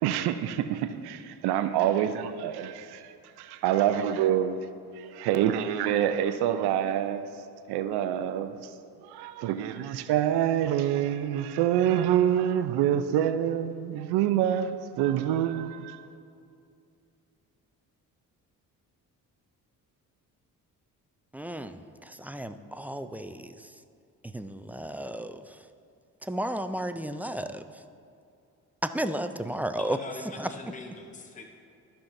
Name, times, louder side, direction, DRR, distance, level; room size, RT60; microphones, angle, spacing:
voice 1, 0.0-3.1 3.4-4.6 5.0-7.2 7.7-8.6 9.0-16.0, right 10 dB, 80° right, 10 dB, 0.6 m, -26 dB
voice 2, 21.3-23.7 24.3-25.6 26.2-27.6 28.8-30.0 30.4-30.5, right 1 dB, 5° right, 9 dB, 0.3 m, -33 dB
voice 3, 29.8-31.4, left 3 dB, 20° left, 3 dB, 0.9 m, -42 dB
14.0 x 5.7 x 2.6 m, 2.5 s
supercardioid pair, 65°, 38 cm